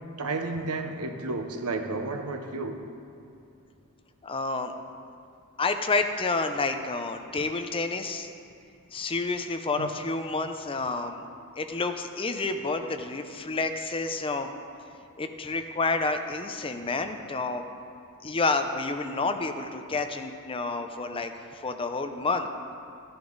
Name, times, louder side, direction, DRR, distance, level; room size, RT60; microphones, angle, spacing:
voice 1, 0.2-2.8 9.8-9.9, right 3 dB, 85° right, 6 dB, 0.9 m, -32 dB
voice 2, 4.2-4.7 5.6-8.3 8.9-11.3 11.5-14.5 15.2-17.6 18.2-22.5, left 3 dB, 25° left, 7 dB, 0.6 m, -29 dB
13.5 x 10.5 x 4.0 m, 2.6 s
head